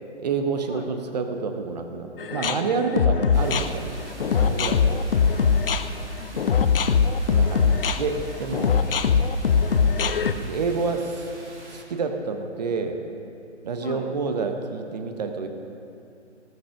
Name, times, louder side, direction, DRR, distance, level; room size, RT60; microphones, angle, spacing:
voice 1, 0.2-3.9 4.2-4.9 7.3-8.8 10.4-11.2 11.7-13.0 13.6-15.5, right 4 dB, 35° right, 6 dB, 1.0 m, -28 dB
sound 1, 2.2-10.3, left 6 dB, 50° left, 0.6 m, -21 dB
sound 2, 3.3-11.8, right 1 dB, 70° right, 3.3 m, -44 dB
voice 2, 5.1-5.5 6.2-6.8 8.8-9.3 13.8-14.1, left 3 dB, 80° left, 2 dB, 1.9 m, -41 dB
18.5 x 6.5 x 5.8 m, 2.6 s
figure-of-eight pair, 135°, 36 cm